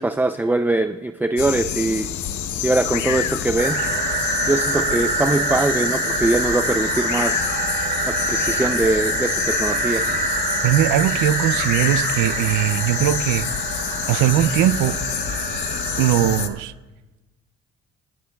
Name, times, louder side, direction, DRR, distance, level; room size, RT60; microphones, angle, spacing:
voice 1, 0.0-2.1 2.6-3.8 4.5-7.5 8.1-10.1, right 2 dB, 5° right, 0.4 m, -22 dB
sound 1, 1.4-16.5, left 9 dB, 75° left, 0.8 m, -28 dB
sound 2, 3.6-16.4, right 3 dB, 30° right, 2.7 m, -25 dB
voice 2, 10.6-13.5 14.1-15.0 16.0-16.7, right 12 dB, 90° right, 0.5 m, -20 dB
27.0 x 9.8 x 2.3 m
cardioid pair, 90°, 30 cm